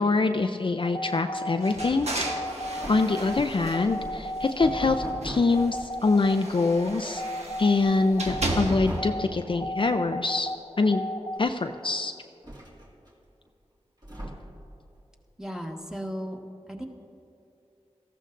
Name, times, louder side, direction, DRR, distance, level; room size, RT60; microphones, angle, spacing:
voice 1, 0.0-2.1 2.9-7.2 7.6-10.5 10.8-11.0 11.4-12.1, left 3 dB, 45° left, 6 dB, 0.5 m, -24 dB
sound 1, 0.8-11.4, left 1 dB, 30° left, 1.1 m, -35 dB
sound 2, 1.6-4.8 5.2-9.1, right 1 dB, 65° right, 1.3 m, -35 dB
sound 3, 2.6-3.3 4.6-5.6 8.2-9.3 10.9-11.0 11.4-11.5 12.4-13.1 14.0-14.7, equal, 35° right, 2.1 m, -38 dB
voice 2, 15.4-16.4 16.7-16.8, equal, 5° right, 0 dB, 1.4 m, -35 dB
18.5 x 14.0 x 2.6 m, 2.7 s
wide cardioid pair, 55°, 12 cm